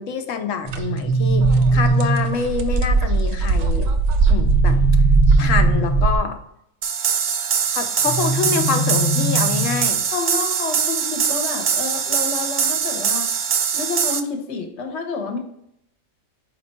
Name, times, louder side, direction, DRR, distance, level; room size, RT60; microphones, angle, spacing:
voice 1, 0.0-3.9 4.3-4.8 5.4-6.4 7.7-10.0, left 6 dB, 75° left, 7 dB, 1.0 m, -26 dB
sound 1, 0.6-2.6 4.3-6.3 8.0-10.0, right 2 dB, 20° left, 1.1 m, -22 dB
sound 2, 0.7-0.8 1.1-6.2, right 4 dB, 85° right, 1.1 m, -18 dB
sound 3, 6.8-14.2, right 7 dB, 60° right, 0.5 m, -22 dB
voice 2, 10.1-13.3 13.7-15.4, left 4 dB, 60° left, 3 dB, 1.2 m, -29 dB
5.0 x 4.4 x 4.3 m, 0.76 s
omnidirectional pair, 1.4 m